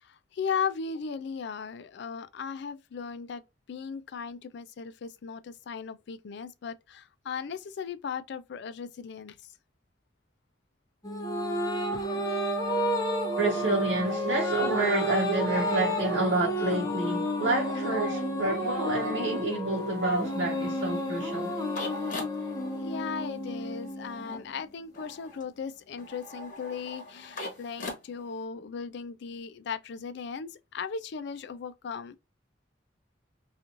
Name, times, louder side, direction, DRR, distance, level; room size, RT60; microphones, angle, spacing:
voice 1, 0.0-3.4 3.7-9.4 11.9-12.3 12.7-12.8 22.8-32.2, left 6 dB, 65° left, 0.4 m, -37 dB
sound 1, 11.0-24.7, equal, 20° left, 0.6 m, -31 dB
voice 2, 13.4-21.5, right 2 dB, 65° right, 0.8 m, -28 dB
sound 2, 19.6-28.5, left 2 dB, 45° left, 1.0 m, -43 dB
3.0 x 2.4 x 2.4 m
head